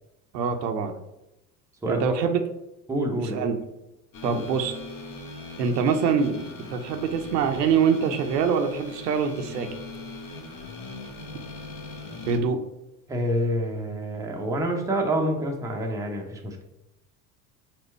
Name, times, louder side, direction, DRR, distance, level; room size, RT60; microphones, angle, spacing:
voice 1, 0.3-0.9 1.9-2.4 3.2-3.6 4.2-4.8 5.6-6.4 6.7-9.7 12.3-12.6, right 6 dB, 80° right, 6 dB, 0.7 m, -24 dB
voice 2, 1.8-2.2 2.9-3.5 4.2-4.4 13.1-16.6, right 1 dB, 5° right, 1 dB, 0.6 m, -27 dB
sound 1, 4.1-12.4, left 2 dB, 45° left, 1.2 m, -40 dB
4.3 x 2.2 x 4.2 m, 0.89 s
hypercardioid pair, 75°, 50 cm